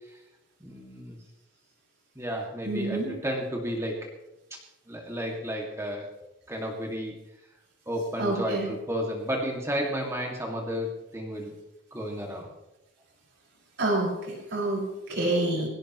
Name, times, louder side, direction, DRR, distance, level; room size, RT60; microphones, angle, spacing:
voice 1, 0.6-1.2 2.2-4.0 4.5-4.6 4.9-6.0 6.5-7.2 7.9-11.5 11.9-12.5 15.1-15.2 15.5-15.7, equal, 15° right, 0 dB, 2.1 m, -32 dB
voice 2, 2.6-3.1 8.2-8.7 13.8-15.7, right 2 dB, 55° right, -2 dB, 5.5 m, -28 dB
21.5 x 17.0 x 3.1 m, 0.97 s
head